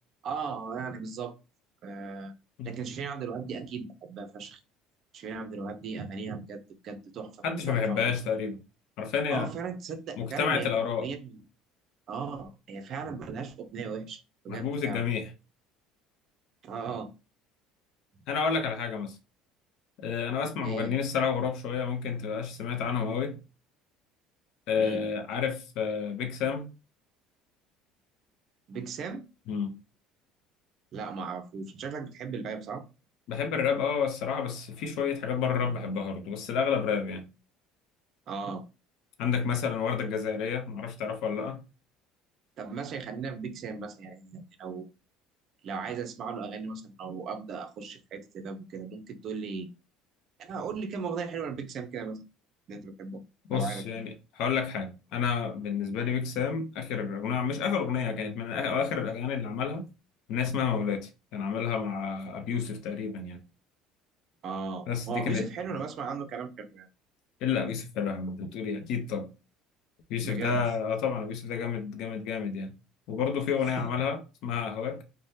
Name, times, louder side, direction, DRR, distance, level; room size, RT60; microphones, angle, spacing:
voice 1, 0.2-1.3 1.8-2.3 2.6-4.6 5.1-7.4 7.7-8.1 9.3-10.7 11.0-11.4 12.1-14.2 14.4-15.0 16.6-17.1 20.6-20.9 24.8-25.0 28.7-29.2 30.9-32.8 38.3-38.6 42.6-44.9 45.6-49.7 50.4-52.2 52.7-53.2 53.5-53.8 64.4-66.9 70.2-70.6 73.8-73.9, right 5 dB, 45° right, 0.5 m, -37 dB
voice 2, 7.4-8.6 9.0-9.5 10.2-11.1 14.5-15.3 18.3-19.2 20.0-23.4 24.7-26.7 29.5-29.7 33.3-37.2 39.2-41.6 53.5-54.1 54.4-59.9 60.3-63.4 64.9-65.5 67.4-69.3 70.1-72.7 73.1-75.0, left 6 dB, 65° left, 0.6 m, -30 dB
3.3 x 2.1 x 2.7 m
cardioid pair, 135°, 0 cm